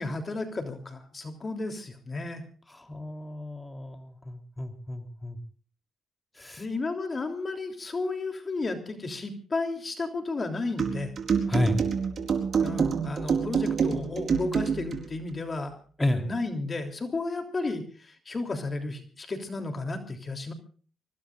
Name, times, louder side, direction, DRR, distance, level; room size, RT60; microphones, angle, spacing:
voice 1, 0.0-2.4 6.6-11.1 12.6-15.7 16.1-20.5, left 3 dB, 30° left, 6 dB, 3.2 m, -33 dB
voice 2, 2.7-5.4 6.3-6.6 11.5-11.8 16.0-16.2, left 1 dB, 15° left, 6 dB, 3.5 m, -31 dB
sound 1, 10.8-15.1, right 6 dB, 50° right, 4.4 m, -27 dB
25.0 x 23.0 x 2.5 m, 0.43 s
cardioid pair, 90°, 0 cm